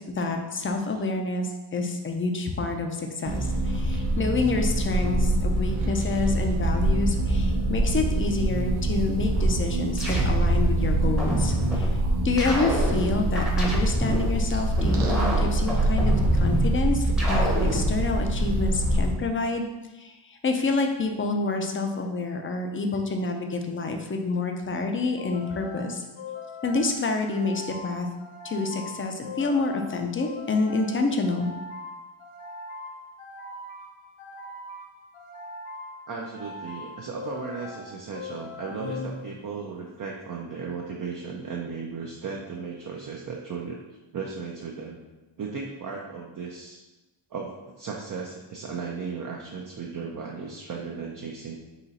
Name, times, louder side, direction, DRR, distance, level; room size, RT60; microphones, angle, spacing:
voice 1, 0.1-19.7 20.0-26.0 26.6-28.1 28.4-31.5, left 3 dB, 30° left, 4 dB, 0.4 m, -28 dB
sound 1, 3.3-19.1, right 1 dB, 75° right, 0.8 m, -24 dB
sound 2, 9.4-10.7 11.2-11.9 12.4-14.3 14.8-16.7 17.2-17.9, right 1 dB, ahead, 0.7 m, -28 dB
sound 3, 25.2-39.7, left 3 dB, 85° left, 0.7 m, -41 dB
voice 2, 36.1-43.8 44.1-45.0 45.4-46.8 47.3-51.6, right 5 dB, 45° right, -1 dB, 0.5 m, -36 dB
4.0 x 3.0 x 4.0 m, 1.1 s
wide cardioid pair, 140°, 48 cm